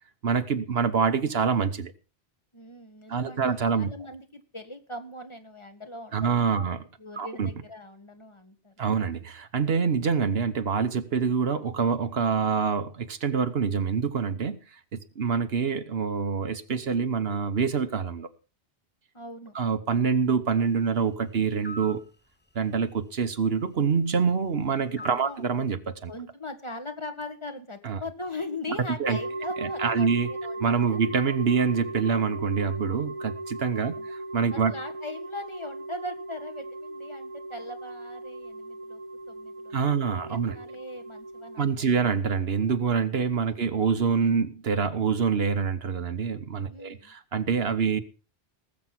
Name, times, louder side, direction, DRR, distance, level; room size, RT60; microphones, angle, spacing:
voice 1, 0.2-1.9 3.1-3.9 6.1-6.8 7.2-7.5 8.8-14.6 14.9-18.3 19.5-22.0 22.5-26.1 27.8-28.0 29.0-29.2 29.6-30.3 30.6-34.7 39.7-40.6 41.6-48.0, right 6 dB, 70° right, 1.3 m, -26 dB
voice 2, 2.5-6.6 7.0-8.9 19.1-19.6 25.0-25.4 26.1-31.0 33.8-34.1 34.5-39.0 39.3-39.9 40.3-41.9 43.3-43.7 46.6-47.1, left 2 dB, 30° left, 1.6 m, -40 dB
sound 1, 21.6-22.0 25.0-25.4, equal, 15° left, 0.5 m, -39 dB
sound 2, 29.0-41.6, right 2 dB, 30° right, 1.3 m, -37 dB
19.0 x 7.5 x 5.9 m
omnidirectional pair, 1.1 m